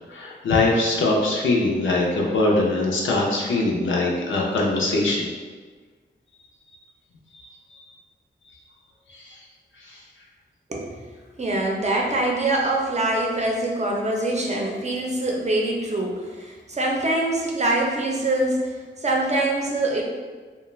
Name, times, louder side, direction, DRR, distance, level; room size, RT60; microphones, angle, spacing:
voice 1, 0.1-5.3 7.7-7.8 9.1-9.4 9.8-10.0, left 2 dB, 90° left, -3 dB, 0.5 m, -22 dB
voice 2, 10.7-11.0 11.4-20.0, right 2 dB, 35° right, -1 dB, 0.6 m, -24 dB
2.3 x 2.1 x 3.1 m, 1.5 s
cardioid pair, 65°, 20 cm